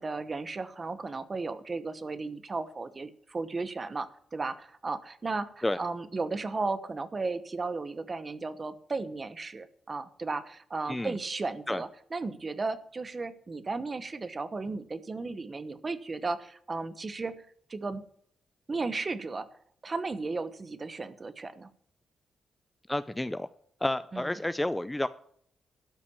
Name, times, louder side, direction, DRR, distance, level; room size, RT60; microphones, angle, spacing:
voice 1, 0.0-18.0 18.7-19.5 19.8-21.7 24.1-24.2, right 3 dB, 30° right, 13 dB, 1.0 m, -35 dB
voice 2, 22.9-23.5 23.8-25.1, left 1 dB, 10° left, 14 dB, 0.4 m, -30 dB
12.5 x 5.8 x 8.5 m, 0.65 s
wide cardioid pair, 135°, 0 cm